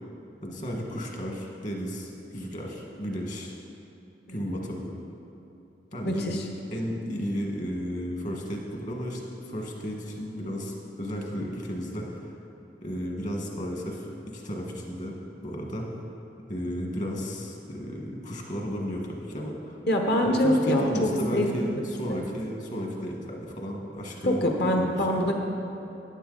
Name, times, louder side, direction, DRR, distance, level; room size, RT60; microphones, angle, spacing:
voice 1, 0.4-3.5 4.3-4.9 5.9-6.4 6.7-12.4 12.8-15.9 16.5-19.8 20.2-24.4 24.7-25.3, equal, 45° left, 0 dB, 1.5 m, -34 dB
voice 2, 6.0-6.5 19.9-21.5 22.1-22.2 24.2-25.3, equal, 60° left, 2 dB, 1.1 m, -24 dB
11.0 x 9.8 x 4.0 m, 2.8 s
head